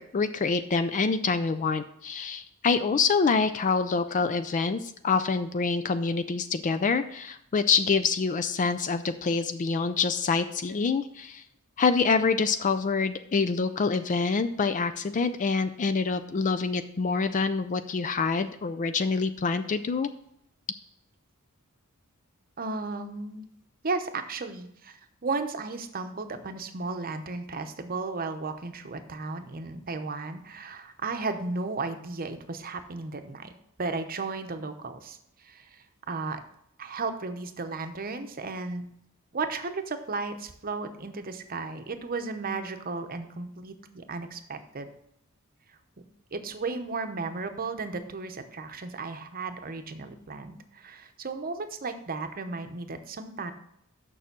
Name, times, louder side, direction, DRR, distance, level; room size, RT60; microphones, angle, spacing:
voice 1, 0.0-11.4 11.8-20.1, left 4 dB, 35° left, 11 dB, 0.4 m, -26 dB
voice 2, 22.6-23.5 23.8-33.5 33.8-36.4 36.8-38.9 39.3-44.9 46.3-53.5, right 3 dB, 45° right, 8 dB, 0.8 m, -34 dB
6.8 x 6.2 x 6.0 m, 0.73 s
head